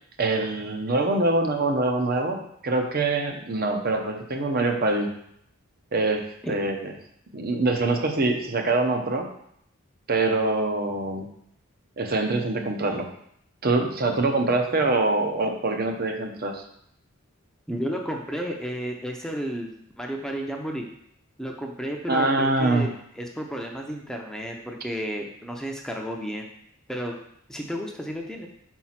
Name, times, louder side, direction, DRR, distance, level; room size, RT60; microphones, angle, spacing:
voice 1, 0.2-5.1 5.9-6.9 7.3-9.3 10.1-11.3 12.0-13.1 13.6-16.6 22.1-22.9, right 2 dB, 45° right, 4 dB, 0.8 m, -24 dB
voice 2, 17.7-19.7 20.0-20.9 21.4-22.9 23.2-26.5 26.9-27.1 27.5-28.5, equal, 5° left, 1 dB, 0.7 m, -32 dB
5.2 x 4.6 x 5.8 m, 0.71 s
head